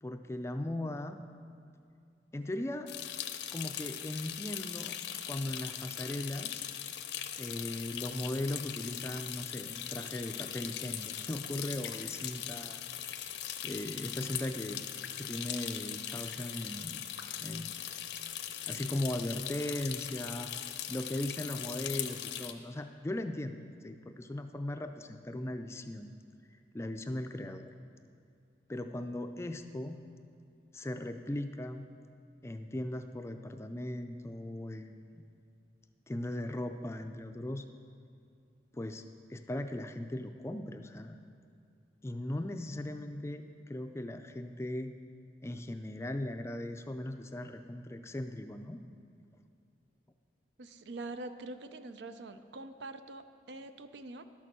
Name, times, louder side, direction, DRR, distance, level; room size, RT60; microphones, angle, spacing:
voice 1, 0.0-1.2 2.3-2.9 3.5-5.0 5.3-6.6 7.4-12.8 13.6-14.8 15.2-17.0 17.4-17.8 18.7-20.5 20.9-23.6 23.8-26.1 26.7-27.7 28.7-30.0 30.7-31.9 32.4-35.0 36.1-37.6 38.7-39.0 39.3-41.2 42.0-44.9 45.4-48.8, left 1 dB, 15° left, 7 dB, 0.3 m, -38 dB
sound 1, 2.9-22.5, left 10 dB, 75° left, 0.6 m, -40 dB
voice 2, 50.6-54.2, right 2 dB, 80° right, 10 dB, 0.6 m, -44 dB
12.0 x 6.7 x 6.1 m, 2.4 s
head